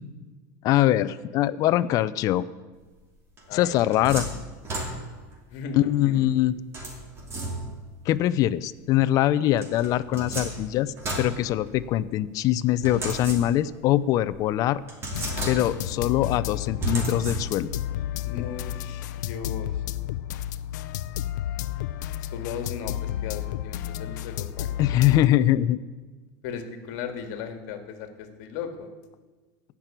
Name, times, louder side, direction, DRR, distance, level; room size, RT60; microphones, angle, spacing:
voice 1, 0.6-2.4 3.5-4.3 5.7-6.6 8.1-14.8 15.5-17.7 24.8-25.8, left 13 dB, 40° left, 15 dB, 0.5 m, -23 dB
sound 1, 3.4-5.3 6.7-7.9 9.6-12.1 12.8-13.8 14.3-14.4 14.9-16.0 16.8-17.8, right 1 dB, 25° right, 2.7 m, -33 dB
voice 2, 3.5-4.0 5.5-6.3 18.2-19.8 22.2-25.1 26.4-28.9, left 6 dB, 55° left, 7 dB, 1.8 m, -37 dB
sound 2, 15.1-25.3, left 12 dB, 90° left, 0.5 m, -32 dB
15.5 x 6.1 x 8.9 m, 1.3 s
supercardioid pair, 155°, 9 cm